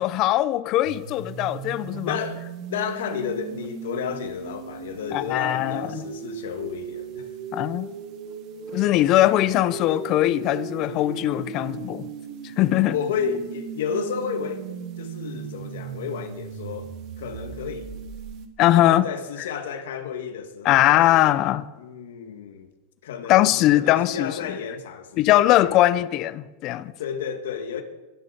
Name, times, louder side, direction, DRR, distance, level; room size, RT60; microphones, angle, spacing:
voice 1, 0.0-2.2 5.1-6.0 7.5-7.9 8.7-12.1 12.6-12.9 18.6-19.1 20.6-21.6 23.3-24.3 25.2-26.9, left 14 dB, 40° left, 0.7 m, -20 dB
sound 1, 0.8-18.5, right 7 dB, 45° right, 1.5 m, -37 dB
voice 2, 2.0-7.3 12.9-14.6 15.0-17.9 18.8-21.4 21.8-22.7 23.0-25.7 27.0-27.8, left 7 dB, 85° left, 1.9 m, -32 dB
21.5 x 10.0 x 4.5 m
supercardioid pair, 150°, 0 cm